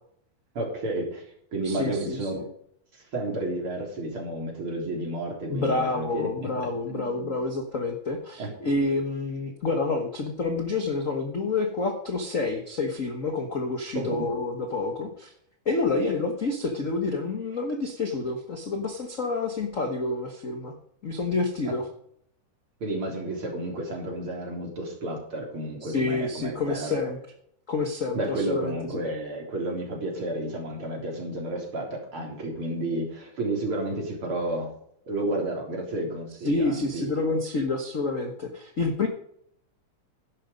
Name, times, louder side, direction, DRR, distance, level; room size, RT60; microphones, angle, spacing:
voice 1, 0.5-1.3 1.5-2.4 2.9-6.5 6.9-7.3 8.4-8.5 13.9-14.4 21.6-21.7 22.8-27.0 28.1-34.7 35.1-37.1, right 1 dB, 40° right, 0 dB, 4.3 m, -31 dB
voice 2, 1.6-2.4 5.5-15.3 15.6-20.7 21.0-21.8 25.8-27.2 27.7-29.0 36.4-39.1, left 3 dB, 55° left, 4 dB, 0.8 m, -28 dB
12.0 x 11.0 x 5.2 m, 0.69 s
omnidirectional pair, 3.6 m